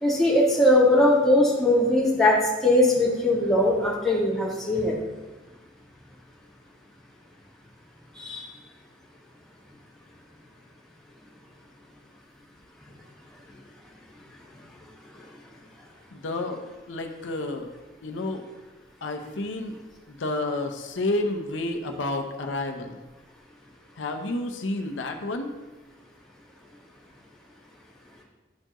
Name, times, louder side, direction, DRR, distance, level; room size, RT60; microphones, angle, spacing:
voice 1, 0.0-4.9 8.1-8.5, left 1 dB, ahead, -7 dB, 1.7 m, -20 dB
voice 2, 16.1-16.6 16.9-17.7 18.0-18.5 19.0-19.8 20.1-23.0 24.0-25.5, left 2 dB, 85° left, 4 dB, 0.7 m, -30 dB
11.5 x 4.5 x 3.0 m, 1.2 s
head